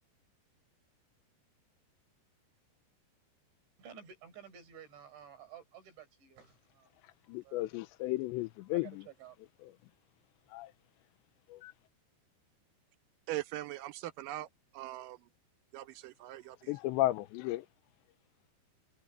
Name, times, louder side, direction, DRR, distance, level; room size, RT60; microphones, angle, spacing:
voice 1, 3.8-7.8 8.7-9.4, right 8 dB, 90° right, 8.2 m, -53 dB
voice 2, 7.0-8.9 10.5-10.7 11.5-11.7 16.7-17.7, left 17 dB, 85° left, 3.0 m, -34 dB
voice 3, 13.3-14.5 14.7-15.2 15.7-16.7, right 15 dB, 70° right, 2.2 m, -41 dB
omnidirectional pair, 5.1 m